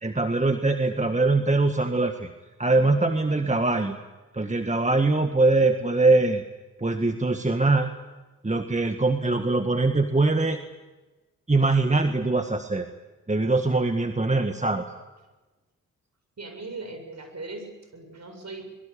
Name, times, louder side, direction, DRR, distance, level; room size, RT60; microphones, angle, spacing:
voice 1, 0.0-2.3 2.6-4.0 4.3-6.4 6.8-7.9 8.4-10.6 11.5-12.9 13.3-14.9, right 3 dB, 20° right, 6 dB, 1.8 m, -22 dB
voice 2, 16.4-18.7, right 3 dB, 50° right, 6 dB, 7.6 m, -39 dB
23.5 x 23.0 x 8.6 m, 1.2 s
supercardioid pair, 45°, 35 cm